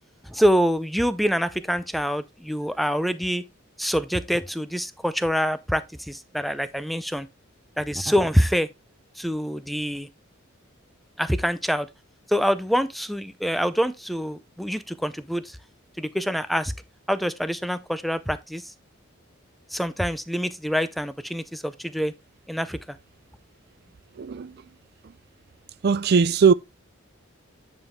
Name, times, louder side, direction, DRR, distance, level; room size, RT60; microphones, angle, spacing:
voice 1, 0.2-3.4 3.8-7.3 7.8-8.7 9.2-10.1 11.2-11.9 12.3-15.6 16.0-16.7 17.1-18.6 19.7-22.1 22.5-23.0, equal, ahead, 0.5 m, -25 dB
voice 2, 24.2-24.5 25.8-26.5, right 6 dB, 50° right, 0.4 m, -19 dB
9.4 x 5.4 x 3.3 m
head